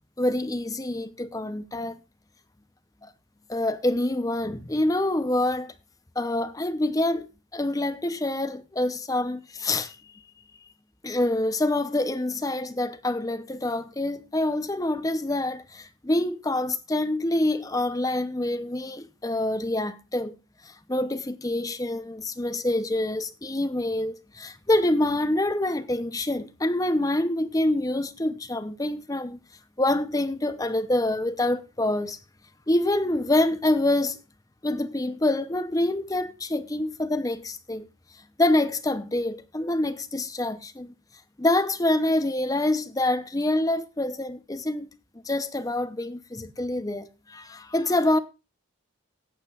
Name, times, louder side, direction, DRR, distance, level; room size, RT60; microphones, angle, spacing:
voice 1, 0.2-2.0 3.0-3.1 3.5-5.7 6.2-7.3 7.5-10.0 11.0-20.3 20.6-29.4 29.8-32.2 32.7-34.2 34.6-37.9 38.4-40.9 41.4-44.9 45.3-48.2, left 1 dB, 15° left, 0.6 m, -26 dB
17.5 x 8.8 x 2.4 m
head